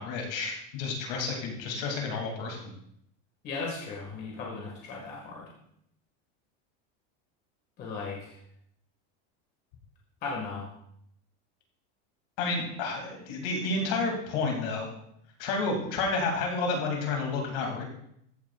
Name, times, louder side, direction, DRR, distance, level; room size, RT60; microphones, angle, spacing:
voice 1, 0.0-2.7 12.4-14.9 15.4-17.8, left 3 dB, 55° left, 1 dB, 2.5 m, -30 dB
voice 2, 3.4-5.5 7.8-8.4 10.2-10.7, left 4 dB, 30° left, -2 dB, 1.6 m, -36 dB
14.5 x 9.1 x 2.3 m, 0.72 s
cardioid pair, 180°, 35 cm